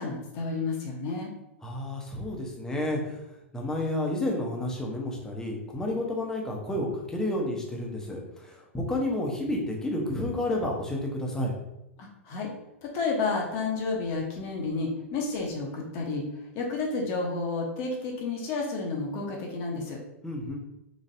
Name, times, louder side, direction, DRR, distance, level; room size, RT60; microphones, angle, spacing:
voice 1, 0.0-1.3 12.0-12.5 12.8-16.2 16.5-20.0, left 3 dB, 35° left, 0 dB, 0.8 m, -31 dB
voice 2, 1.6-3.2 3.5-11.5 20.2-20.6, left 1 dB, 10° left, -1 dB, 0.8 m, -30 dB
4.0 x 3.1 x 2.6 m, 0.91 s
figure-of-eight pair, 100°, 7 cm